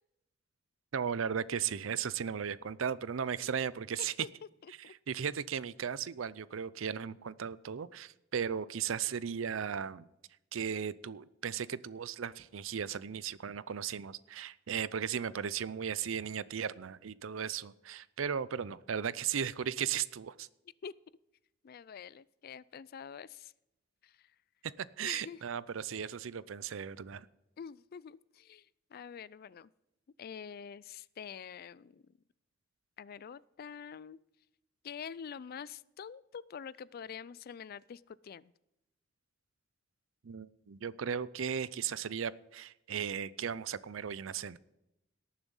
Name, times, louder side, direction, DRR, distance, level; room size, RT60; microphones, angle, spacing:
voice 1, 0.9-4.1 5.1-10.1 10.5-20.5 24.6-27.3 40.2-44.6, right 7 dB, 90° right, 18 dB, 0.5 m, -36 dB
voice 2, 4.6-4.9 20.8-20.9 21.6-23.5 24.0-24.3 25.0-25.4 25.9-26.1 27.6-29.7 30.2-32.0 33.0-34.2 34.8-38.5, left 7 dB, 50° left, 21 dB, 0.4 m, -46 dB
18.0 x 7.2 x 5.5 m, 0.89 s
head